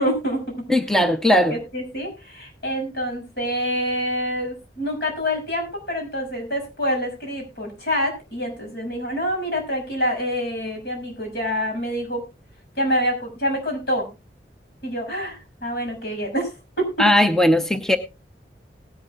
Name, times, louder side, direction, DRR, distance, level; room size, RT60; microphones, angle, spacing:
voice 1, 0.0-0.7 1.5-12.2 12.8-14.1 14.8-16.5 16.8-16.9, equal, 65° left, 2 dB, 6.5 m, -26 dB
voice 2, 0.7-1.6 17.0-18.0, left 1 dB, 5° left, 8 dB, 0.7 m, -18 dB
19.0 x 11.5 x 2.4 m, 0.28 s
head